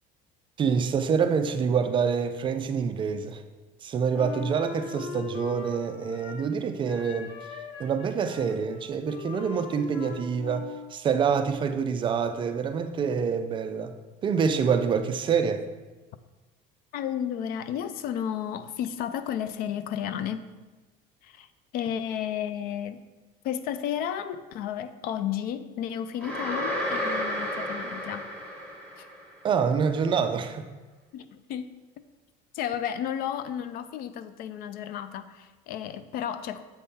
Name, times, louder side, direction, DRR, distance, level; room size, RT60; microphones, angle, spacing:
voice 1, 0.6-3.4 3.8-7.5 7.8-13.9 14.2-15.6 29.4-30.7, right 6 dB, 30° right, 8 dB, 0.3 m, -26 dB
Wind instrument woodwind instrument, 4.1-6.6 6.9-10.9, left 5 dB, 80° left, 0.8 m, -40 dB
voice 2, 16.9-20.5 21.2-21.5 21.7-23.0 23.4-28.3 29.0-29.1 31.1-31.7 32.5-36.6, left 9 dB, 60° left, 12 dB, 0.4 m, -32 dB
sound 1, 26.2-29.3, equal, 5° left, 1.1 m, -32 dB
7.7 x 3.6 x 4.1 m, 1.2 s
cardioid pair, 145°, 18 cm